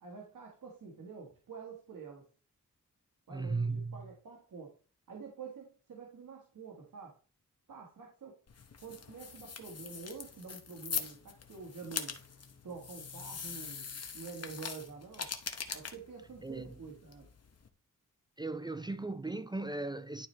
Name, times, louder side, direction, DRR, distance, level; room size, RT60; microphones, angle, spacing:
voice 1, 0.0-2.2 3.3-3.6 3.9-4.7 5.1-7.2 7.7-8.4 8.8-12.2 12.6-13.9 14.1-15.3 15.7-17.3, right 5 dB, 85° right, 1.7 m, -47 dB
voice 2, 3.3-4.0 16.4-16.8 18.4-20.3, right 3 dB, 15° right, 0.4 m, -36 dB
sound 1, 8.5-17.7, left 5 dB, 50° left, 1.0 m, -43 dB
11.0 x 4.5 x 3.3 m
wide cardioid pair, 95°, 31 cm